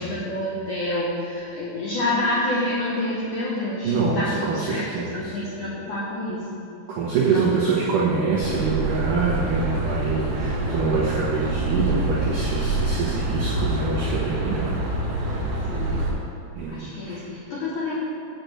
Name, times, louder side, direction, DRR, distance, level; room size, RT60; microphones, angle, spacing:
voice 1, 0.0-6.5 7.3-7.7 10.4-10.8 15.7-16.0 16.7-17.9, left 1 dB, 80° left, -7 dB, 1.8 m, -28 dB
voice 2, 3.8-5.3 6.9-14.8 16.5-17.2, right 4 dB, 80° right, -5 dB, 1.8 m, -25 dB
sound 1, 8.4-16.1, right 1 dB, 60° right, 2.4 m, -26 dB
7.8 x 6.8 x 7.8 m, 2.7 s
omnidirectional pair, 5.4 m